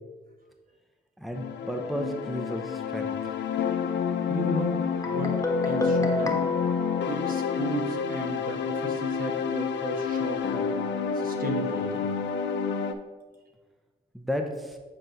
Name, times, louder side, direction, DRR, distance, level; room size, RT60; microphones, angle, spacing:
voice 1, 1.2-3.2 14.1-14.8, equal, ahead, 4 dB, 0.8 m, -33 dB
sound 1, 1.3-12.9, left 7 dB, 80° left, 0.5 m, -29 dB
voice 2, 4.3-5.4 5.6-6.4 7.1-10.7 11.2-12.1, right 2 dB, 50° right, 2 dB, 1.3 m, -35 dB
Guitar, 5.0-7.8, left 2 dB, 15° left, 1.3 m, -29 dB
7.7 x 4.4 x 4.0 m, 1.3 s
cardioid pair, 65°, 18 cm